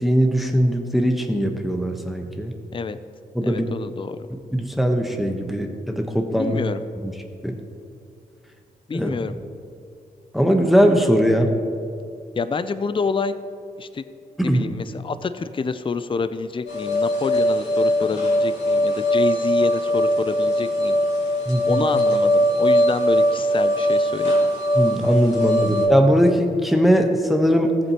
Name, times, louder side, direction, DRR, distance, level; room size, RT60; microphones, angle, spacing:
voice 1, 0.0-2.5 3.3-3.6 4.5-6.6 7.4-7.6 8.9-9.1 10.3-11.5 14.4-14.6 21.5-21.8 24.7-27.8, equal, ahead, 3 dB, 1.0 m, -20 dB
voice 2, 3.4-4.2 6.4-6.8 8.9-9.3 12.4-13.3 13.8-14.1 14.4-21.0 21.6-24.3 25.6-25.7, left 4 dB, 30° left, 11 dB, 0.5 m, -27 dB
sound 1, 16.7-25.9, equal, 90° left, 2.2 m, -20 dB
14.0 x 7.7 x 2.9 m, 2.5 s
supercardioid pair, 45°, 18 cm